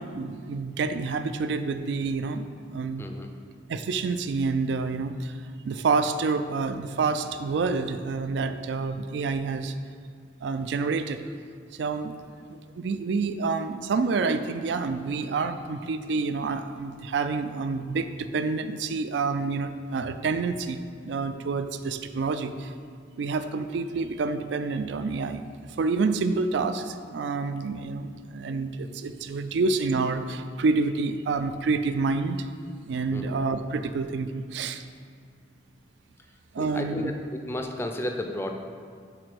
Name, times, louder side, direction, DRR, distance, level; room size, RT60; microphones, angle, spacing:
voice 1, 0.0-2.4 2.7-3.1 3.7-5.4 5.6-9.7 10.4-11.2 11.7-12.1 12.5-22.7 23.2-25.5 25.8-32.5 32.9-34.8 36.5-37.1, right 4 dB, 70° right, 10 dB, 0.3 m, -28 dB
voice 2, 36.6-38.5, left 1 dB, 15° left, 4 dB, 0.4 m, -32 dB
4.9 x 4.2 x 6.0 m, 2.1 s
head